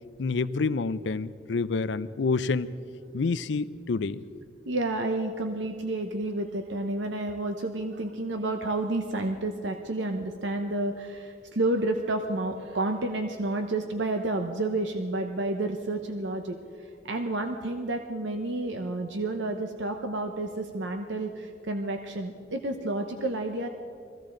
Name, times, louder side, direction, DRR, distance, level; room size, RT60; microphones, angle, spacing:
voice 1, 0.2-2.7 3.1-4.2, left 4 dB, 70° left, 14 dB, 0.5 m, -28 dB
voice 2, 4.7-23.7, right 2 dB, 70° right, 5 dB, 0.8 m, -30 dB
22.0 x 15.5 x 3.8 m, 2.4 s
head